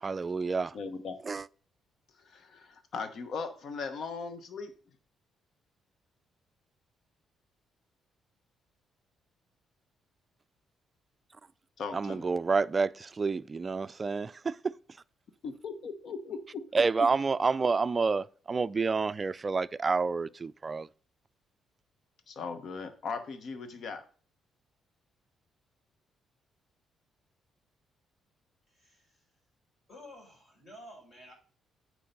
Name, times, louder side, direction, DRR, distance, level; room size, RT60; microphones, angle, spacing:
voice 1, 0.0-0.8 1.3-1.4 11.9-14.7 16.7-20.9, right 4 dB, 30° right, 0.3 m, -29 dB
voice 2, 0.7-1.2 2.2-4.7 11.8-12.3 15.4-16.7 17.0-17.1 22.3-24.0, left 5 dB, 60° left, 1.0 m, -38 dB
voice 3, 28.7-29.2 29.9-31.3, equal, 40° left, 4.4 m, -51 dB
8.5 x 4.6 x 5.3 m
cardioid pair, 90°, 0 cm